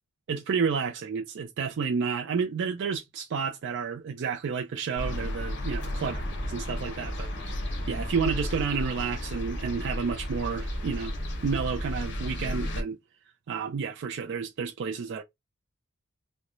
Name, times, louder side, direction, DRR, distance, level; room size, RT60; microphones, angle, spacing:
voice 1, 0.3-6.2 6.5-7.6 7.9-11.1 11.4-13.0 13.5-15.2, right 5 dB, 55° right, 0.4 m, -30 dB
sound 1, 4.9-12.8, equal, 55° left, 0.8 m, -33 dB
2.9 x 2.1 x 2.3 m
head